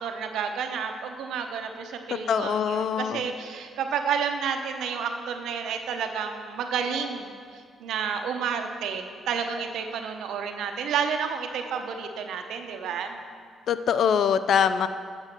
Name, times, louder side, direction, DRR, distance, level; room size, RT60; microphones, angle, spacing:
voice 1, 0.0-13.2, right 6 dB, 80° right, 5 dB, 0.8 m, -30 dB
voice 2, 2.3-3.2 13.7-14.9, left 7 dB, 65° left, 12 dB, 0.4 m, -23 dB
7.9 x 6.8 x 5.9 m, 2.1 s
cardioid pair, 90°, 0 cm